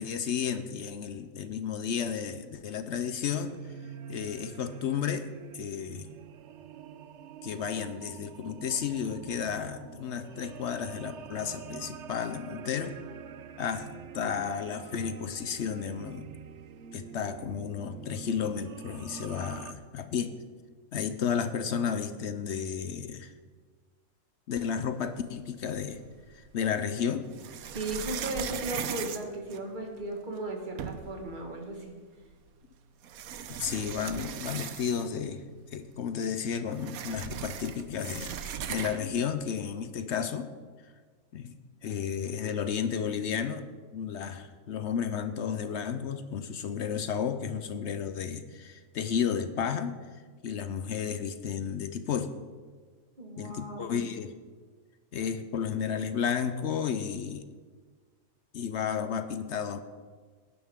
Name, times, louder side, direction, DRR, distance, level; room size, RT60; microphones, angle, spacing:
voice 1, 0.0-3.7 4.1-5.3 5.5-6.1 7.4-13.0 13.6-16.3 16.9-20.3 20.9-23.3 24.5-26.0 26.3-27.3 33.6-35.4 35.7-40.5 41.3-41.6 41.8-43.7 43.9-49.9 50.4-52.3 53.4-54.4 55.1-57.5 58.5-59.8, left 7 dB, 60° left, 10 dB, 0.8 m, -32 dB
sound 1, 3.3-19.7, right 7 dB, 65° right, 0.8 m, -46 dB
sound 2, 25.7-26.5 27.3-30.1 30.5-30.6 30.8-31.3 32.3-32.4 33.0-35.2 35.6-35.7 35.9-39.2, right 8 dB, 80° right, 1.2 m, -38 dB
voice 2, 27.7-31.9 53.2-54.1, right 1 dB, 35° right, 1 dB, 1.8 m, -36 dB
17.0 x 11.0 x 3.6 m, 1.5 s
omnidirectional pair, 1.5 m